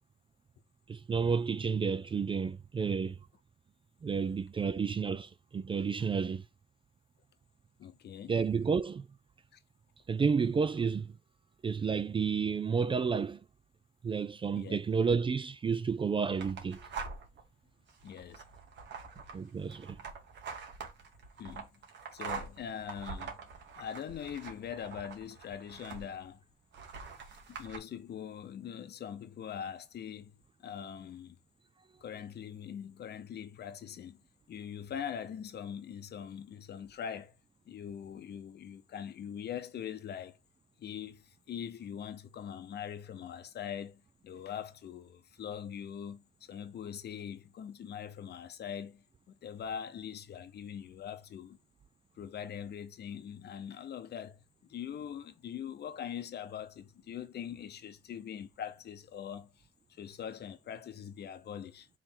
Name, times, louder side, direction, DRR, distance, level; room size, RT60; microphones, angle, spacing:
voice 1, 0.9-3.2 4.0-6.4 8.3-9.0 10.1-11.1 11.6-13.4 14.0-16.8 19.3-20.0, right 5 dB, 25° right, 0.3 m, -31 dB
voice 2, 7.8-8.3 9.5-9.6 14.5-14.8 18.0-18.4 21.4-21.8 22.1-23.4 23.8-26.4 27.6-31.4 32.0-34.2 34.5-37.3 37.7-40.4 40.8-51.6 52.2-54.4 54.7-59.6 59.9-61.9, left 8 dB, 55° left, 0.8 m, -42 dB
sound 1, 16.4-17.4 17.9-26.3 26.7-27.8, right 5 dB, 65° right, 1.3 m, -44 dB
3.7 x 3.1 x 4.3 m
cardioid pair, 90°, 20 cm